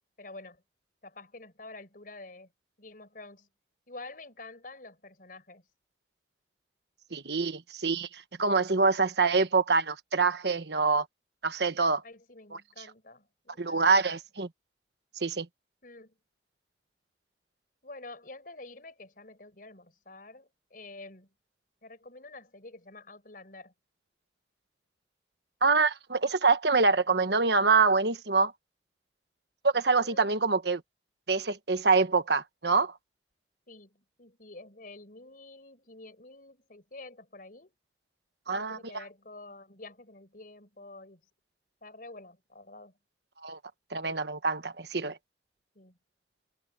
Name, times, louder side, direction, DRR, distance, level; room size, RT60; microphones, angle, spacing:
voice 1, 0.2-0.6 1.0-2.5 2.8-3.5 3.9-5.7 12.0-14.2 15.8-16.2 17.8-21.3 21.8-23.7 30.0-30.3 33.7-37.7 38.5-41.2 41.8-42.9 45.8-46.0, left 2 dB, 50° left, 5.4 m, -48 dB
voice 2, 7.1-11.0 11.4-12.0 13.6-14.5 15.2-15.5 25.6-28.5 29.6-30.8 31.3-32.9 38.5-39.0 43.4-43.6 43.9-45.2, right 4 dB, 70° right, 1.3 m, -25 dB
head